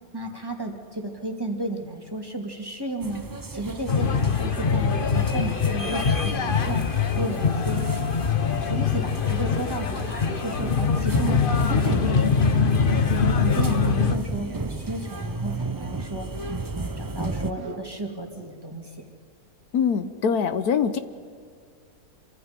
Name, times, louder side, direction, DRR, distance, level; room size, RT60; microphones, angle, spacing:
voice 1, 0.1-3.2 3.5-7.9 8.5-13.0 13.4-16.3 16.7-19.1, right 2 dB, 15° right, 2 dB, 2.5 m, -33 dB
sound 1, 3.0-17.5, right 3 dB, 35° right, 0.3 m, -34 dB
sound 2, 3.9-14.1, left 5 dB, 40° left, 1.1 m, -23 dB
sound 3, 13.8-14.6 15.0-15.7 16.3-18.1, right 2 dB, 50° right, 1.9 m, -43 dB
voice 2, 19.7-21.0, left 6 dB, 80° left, 11 dB, 1.4 m, -23 dB
27.5 x 24.5 x 5.2 m, 2.2 s
omnidirectional pair, 1.6 m